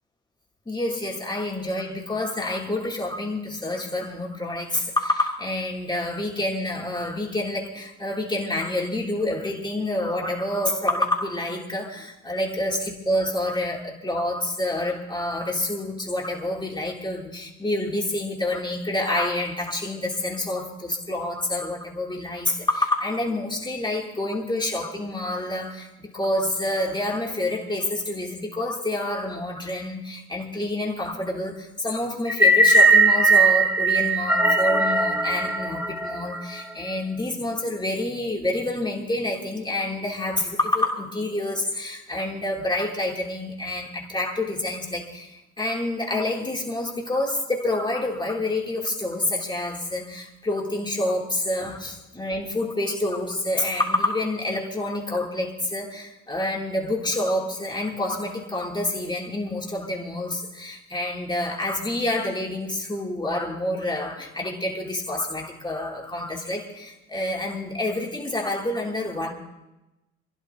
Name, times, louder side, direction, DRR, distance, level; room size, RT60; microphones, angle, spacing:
voice 1, 0.6-69.3, left 1 dB, 15° left, -2 dB, 3.3 m, -28 dB
sound 1, 32.3-36.6, right 2 dB, 5° right, 1.6 m, -19 dB
29.5 x 11.0 x 3.0 m, 0.96 s
cardioid pair, 90°, 30 cm